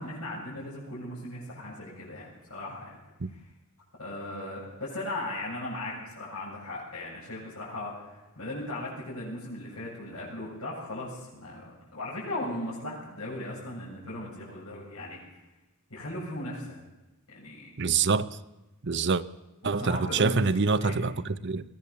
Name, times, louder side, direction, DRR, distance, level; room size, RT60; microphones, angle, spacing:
voice 1, 0.0-3.0 3.3-3.4 4.0-15.2 15.9-16.8 17.3-17.7 19.6-20.9, left 1 dB, 85° left, 7.4 m, -37 dB
voice 2, 17.8-18.3 18.8-19.2 19.6-21.6, right 4 dB, 55° right, 0.8 m, -26 dB
21.5 x 17.0 x 7.2 m
head